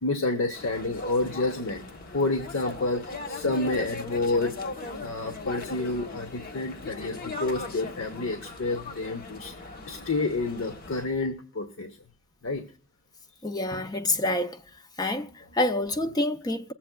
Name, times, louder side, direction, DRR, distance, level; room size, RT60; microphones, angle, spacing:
voice 1, 0.0-1.8 2.1-4.6 5.0-9.5 9.9-12.0 12.4-12.6, left 2 dB, 85° left, 1.0 m, -29 dB
sound 1, 0.5-11.1, left 2 dB, 45° left, 1.0 m, -39 dB
voice 2, 13.4-14.6 15.0-16.7, left 1 dB, 20° left, 0.5 m, -27 dB
22.0 x 7.5 x 2.3 m
head